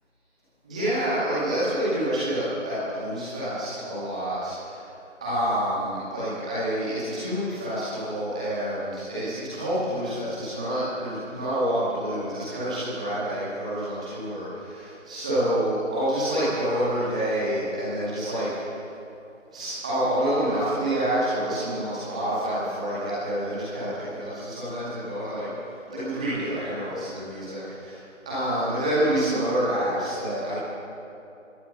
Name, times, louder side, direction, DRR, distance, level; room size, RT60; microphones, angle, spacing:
voice 1, 0.6-4.9 5.2-18.8 19.5-25.5 25.9-30.5, right 1 dB, 5° right, -11 dB, 2.1 m, -28 dB
22.0 x 18.0 x 7.4 m, 2.8 s
figure-of-eight pair, 165°, 38 cm